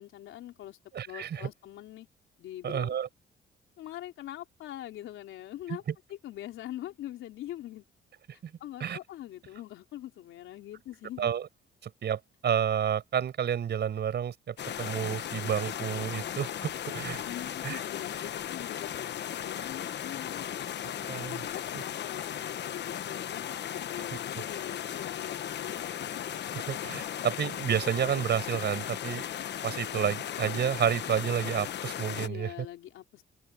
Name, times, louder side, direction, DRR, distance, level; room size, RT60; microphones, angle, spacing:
voice 1, 0.0-0.8 1.1-2.1 2.4-3.0 3.8-5.8 6.1-7.8 8.6-11.3 17.2-20.5 21.2-25.9 26.8-27.0 32.1-33.2, left 13 dB, 85° left, 4.2 m, -43 dB
voice 2, 0.9-1.5 2.6-3.1 8.4-8.5 8.8-9.0 11.2-11.5 11.8-17.2 17.6-17.8 21.1-21.4 21.7-21.8 26.5-29.2 29.6-32.5, right 8 dB, 60° right, 5.1 m, -30 dB
sound 1, 14.6-32.3, left 10 dB, 60° left, 1.2 m, -36 dB
open air
cardioid pair, 90°, 20 cm